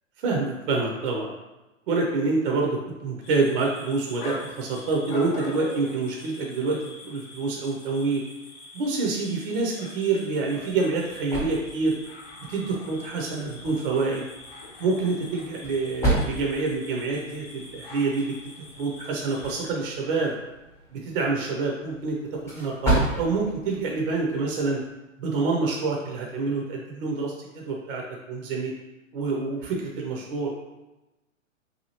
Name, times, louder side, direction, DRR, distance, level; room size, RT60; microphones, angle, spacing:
voice 1, 0.2-1.3 1.9-8.2 8.7-12.0 12.5-14.3 14.8-20.3 20.9-22.2 22.5-24.8 25.2-28.0 28.3-28.7 29.1-30.5, right 3 dB, 45° right, -1 dB, 0.6 m, -27 dB
sound 1, 3.2-19.7, left 2 dB, 50° left, 0.7 m, -44 dB
sound 2, 10.5-24.9, right 2 dB, 5° left, 0.6 m, -33 dB
2.8 x 2.3 x 2.8 m, 1.0 s
hypercardioid pair, 125°, 39 cm